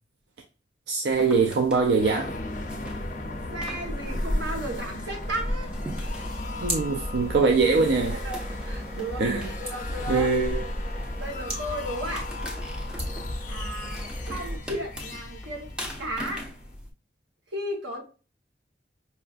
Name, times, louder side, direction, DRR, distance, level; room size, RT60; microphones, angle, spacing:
voice 1, 0.9-2.4 6.6-8.2 9.2-9.5 10.1-10.6, right 4 dB, 65° right, 0.4 m, -23 dB
sound 1, 1.1-16.9, equal, 5° right, 0.6 m, -37 dB
sound 2, 2.0-16.7, left 2 dB, 45° left, 0.5 m, -39 dB
voice 2, 3.5-5.7 7.4-7.5 8.1-10.3 11.1-12.3 13.5-15.7 16.0-16.5 17.5-18.0, right 1 dB, 85° right, 1.2 m, -34 dB
sound 3, 6.0-14.6, equal, 30° right, 1.3 m, -35 dB
5.2 x 2.4 x 2.4 m
head